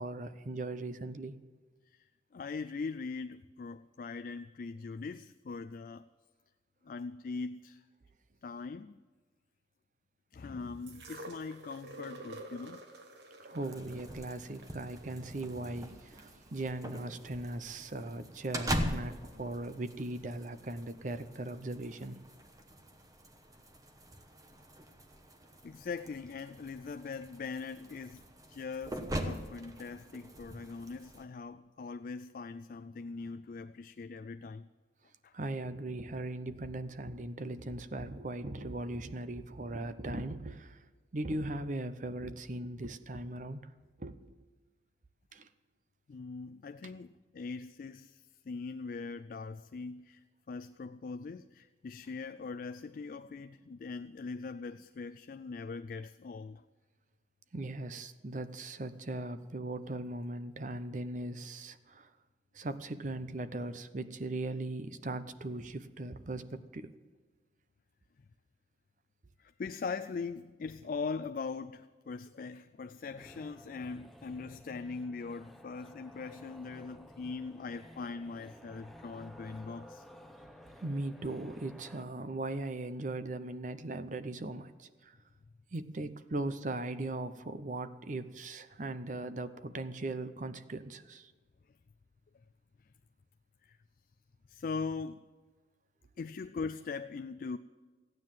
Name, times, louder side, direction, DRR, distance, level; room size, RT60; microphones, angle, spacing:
voice 1, 0.0-1.3 13.4-22.2 35.3-40.8 41.1-43.6 44.0-44.2 45.3-45.5 57.5-62.1 62.5-66.9 80.8-85.2 85.7-91.3, right 2 dB, 45° right, 0.7 m, -39 dB
voice 2, 2.3-6.1 6.8-7.8 8.4-9.0 10.3-12.8 25.6-34.7 35.2-35.3 46.1-56.6 69.4-80.1 93.6-93.8 94.5-95.2 96.2-97.6, left 4 dB, 50° left, 0.3 m, -41 dB
sound 1, 10.9-16.9 17.8-17.9, right 2 dB, 70° right, 1.2 m, -50 dB
sound 2, 13.6-31.2, equal, 20° right, 1.0 m, -42 dB
sound 3, 73.2-82.0, left 1 dB, ahead, 0.7 m, -54 dB
15.0 x 9.4 x 7.4 m
head